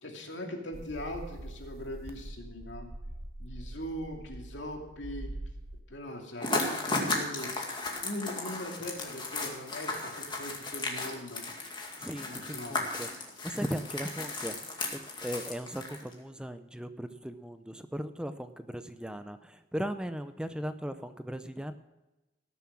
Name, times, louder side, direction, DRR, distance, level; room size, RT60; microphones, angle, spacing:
voice 1, 0.0-2.9 3.4-5.3 5.9-7.5 8.0-11.4 12.2-12.9, left 1 dB, 85° left, 2 dB, 2.5 m, -40 dB
sound 1, 0.7-5.8, right 1 dB, 35° right, 0.9 m, -43 dB
sound 2, 6.4-16.1, left 2 dB, 25° left, 2.1 m, -35 dB
voice 2, 12.0-21.7, equal, 5° right, 10 dB, 0.5 m, -38 dB
18.0 x 7.1 x 6.2 m, 1.0 s
head